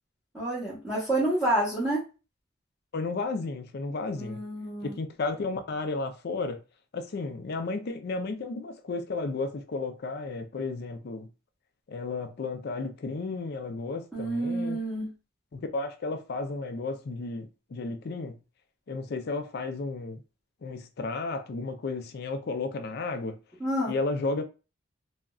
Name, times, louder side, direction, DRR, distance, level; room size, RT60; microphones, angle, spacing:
voice 1, 0.3-2.0 4.1-4.9 14.1-15.1 23.6-23.9, right 1 dB, 5° right, 1.0 m, -28 dB
voice 2, 2.9-4.4 4.8-6.6 6.9-11.3 11.9-14.8 15.5-18.4 18.9-20.2 20.6-23.4 23.9-24.4, left 3 dB, 55° left, 0.4 m, -33 dB
3.6 x 2.1 x 2.3 m
head